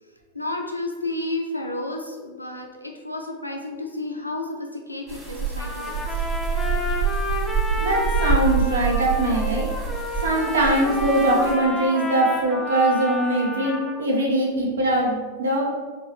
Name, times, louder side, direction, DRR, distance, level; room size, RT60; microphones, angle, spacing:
voice 1, 0.3-6.1 6.6-6.8 7.7-7.8, left 2 dB, 85° left, 2 dB, 0.5 m, -32 dB
sound 1, 5.1-11.5, right 5 dB, 20° right, 1.4 m, -26 dB
Trumpet, 5.6-14.0, left 1 dB, 5° left, 0.6 m, -31 dB
voice 2, 7.8-9.7 10.2-15.7, right 1 dB, 70° right, -2 dB, 0.8 m, -22 dB
4.8 x 3.0 x 3.0 m, 1.5 s
figure-of-eight pair, 90°, 0 cm